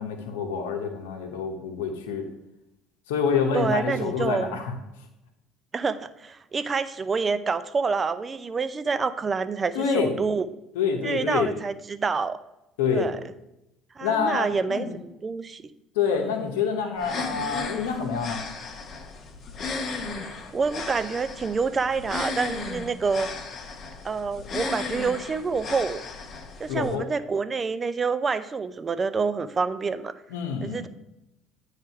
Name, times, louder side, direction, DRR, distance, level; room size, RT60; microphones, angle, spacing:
voice 1, 0.0-2.3 3.1-4.8 9.7-10.1 10.7-11.5 12.8-13.1 14.0-15.0 15.9-18.4 26.7-27.0 30.3-30.8, left 6 dB, 80° left, 2 dB, 0.9 m, -27 dB
voice 2, 3.5-4.5 5.7-10.5 11.0-12.4 12.9-13.2 14.0-15.6 20.2-23.3 24.0-26.0 26.6-30.1 30.6-30.9, right 4 dB, 30° right, 13 dB, 0.5 m, -27 dB
sound 1, 17.0-26.9, left 4 dB, 45° left, 1.0 m, -35 dB
9.0 x 3.3 x 5.6 m, 0.89 s
hypercardioid pair, 65°, 0 cm